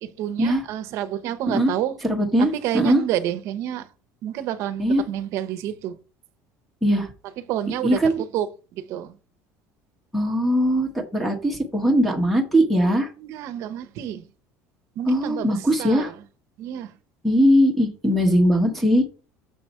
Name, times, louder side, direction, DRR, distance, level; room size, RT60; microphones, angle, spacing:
voice 1, 0.0-2.0 2.4-3.9 4.2-6.0 7.5-9.1 13.2-14.3 15.0-16.2 16.6-17.0, right 11 dB, 50° right, 0.9 m, -29 dB
voice 2, 2.1-3.0 4.8-5.0 6.8-7.1 7.8-8.2 10.1-13.1 15.1-16.1 17.2-19.0, equal, ahead, 1.3 m, -20 dB
7.0 x 4.9 x 4.4 m
cardioid pair, 170°, 6 cm